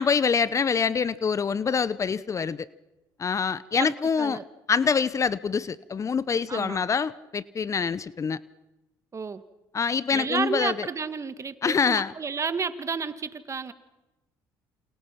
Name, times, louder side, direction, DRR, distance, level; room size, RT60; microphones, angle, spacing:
voice 1, 0.0-2.7 3.2-4.4 4.7-8.4 9.7-10.9 11.6-12.1, left 6 dB, 35° left, 18 dB, 0.9 m, -25 dB
voice 2, 3.8-4.4 6.5-6.8 9.1-9.4 10.1-13.7, right 5 dB, 35° right, 12 dB, 1.8 m, -31 dB
28.5 x 27.5 x 5.9 m, 1.0 s
supercardioid pair, 70°, 9 cm